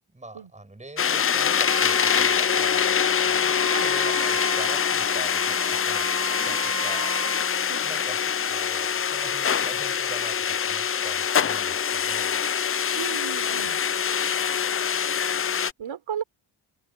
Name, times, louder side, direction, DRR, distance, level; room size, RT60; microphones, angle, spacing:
voice 1, 0.1-6.1 6.4-7.6 7.8-12.5 13.6-13.7, right 2 dB, 15° right, 7.9 m, -43 dB
sound 1, 1.0-15.7, left 7 dB, 30° left, 0.4 m, -24 dB
Wind instrument woodwind instrument, 1.6-7.5, right 8 dB, 30° right, 1.3 m, -35 dB
voice 2, 13.0-13.8 15.8-16.2, right 9 dB, 75° right, 4.0 m, -34 dB
wide cardioid pair, 130°, 48 cm